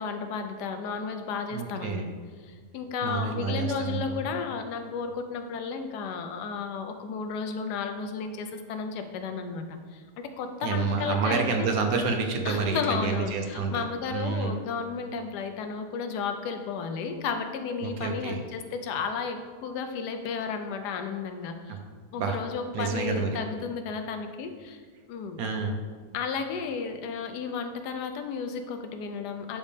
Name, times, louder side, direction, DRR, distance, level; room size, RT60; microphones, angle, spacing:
voice 1, 0.0-2.1 2.4-11.7 12.4-21.8 22.1-24.8 25.1-25.4 26.1-29.6, left 5 dB, 85° left, 7 dB, 1.2 m, -33 dB
voice 2, 1.5-2.0 3.0-4.3 10.6-13.8 14.1-14.5 17.8-18.4 21.7-21.8 22.2-22.4 22.7-23.3 25.4-25.7, right 4 dB, 70° right, 3 dB, 1.0 m, -28 dB
10.0 x 3.5 x 2.7 m, 1.5 s
omnidirectional pair, 1.7 m